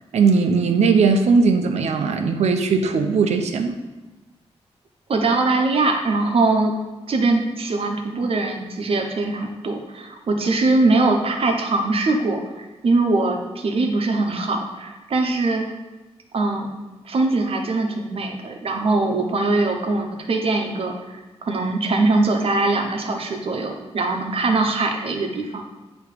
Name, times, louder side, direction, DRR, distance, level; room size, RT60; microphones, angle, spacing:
voice 1, 0.1-3.7, right 4 dB, 85° right, 6 dB, 0.6 m, -18 dB
voice 2, 5.1-6.7 7.1-15.6 16.3-16.7 17.0-25.7, right 3 dB, 60° right, 3 dB, 0.9 m, -22 dB
8.3 x 3.0 x 5.1 m, 1.1 s
wide cardioid pair, 115°, 11 cm